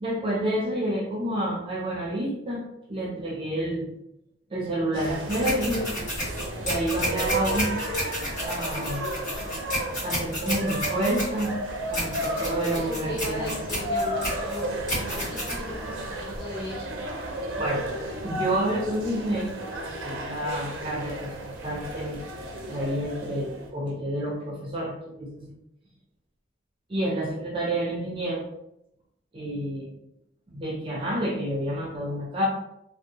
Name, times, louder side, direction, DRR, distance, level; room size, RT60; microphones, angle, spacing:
voice 1, 0.0-2.6 2.9-3.9 4.5-5.9 6.6-7.7 8.4-9.0 10.0-11.5 11.9-13.5 17.6-17.8 18.2-19.5 20.0-22.2 22.7-25.5 26.9-28.4 29.3-29.9 30.5-32.5, right 1 dB, 30° right, -3 dB, 0.5 m, -29 dB
sound 1, 4.9-23.7, right 1 dB, 90° right, 0.5 m, -33 dB
sound 2, 5.3-16.4, equal, 45° left, 1.3 m, -32 dB
voice 2, 12.7-14.8 15.3-17.0, equal, 25° left, -5 dB, 0.9 m, -36 dB
2.5 x 2.0 x 2.8 m, 0.82 s
head